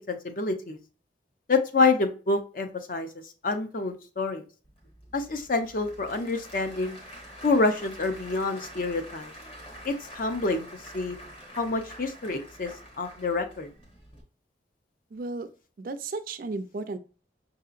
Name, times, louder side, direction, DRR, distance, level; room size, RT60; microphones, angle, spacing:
voice 1, 0.1-0.8 1.5-3.1 3.4-4.4 5.1-7.0 7.4-9.3 9.8-10.7 10.9-11.2 11.6-12.7 13.0-13.7, left 3 dB, 50° left, 7 dB, 0.6 m, -27 dB
Applause / Crowd, 4.6-14.2, equal, 30° left, 1.0 m, -46 dB
voice 2, 15.1-15.5 15.8-17.0, right 3 dB, 50° right, 10 dB, 0.4 m, -34 dB
5.6 x 2.8 x 2.4 m, 0.37 s
head